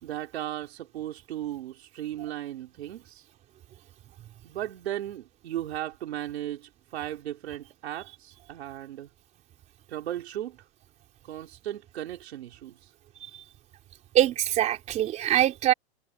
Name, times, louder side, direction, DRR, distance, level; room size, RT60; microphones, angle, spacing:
voice 1, 0.0-3.2 4.4-9.1 9.9-10.7 11.2-12.9, right 12 dB, 75° right, 3.6 m, -36 dB
voice 2, 14.1-15.7, right 12 dB, 20° right, 4.1 m, -24 dB
supercardioid pair, 170°, 32 cm